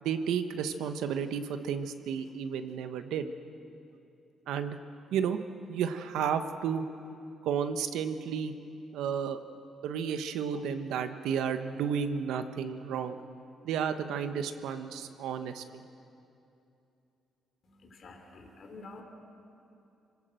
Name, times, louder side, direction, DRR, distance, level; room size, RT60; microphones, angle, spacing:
voice 1, 0.0-3.3 4.5-4.8 5.1-5.4 5.7-6.8 7.4-8.5 8.9-9.4 9.8-13.2 13.6-15.8, right 7 dB, 85° right, 8 dB, 1.2 m, -32 dB
voice 2, 17.6-19.0, left 3 dB, 55° left, 2 dB, 3.3 m, -49 dB
26.5 x 18.5 x 7.8 m, 2.7 s
cardioid pair, 90°, 0 cm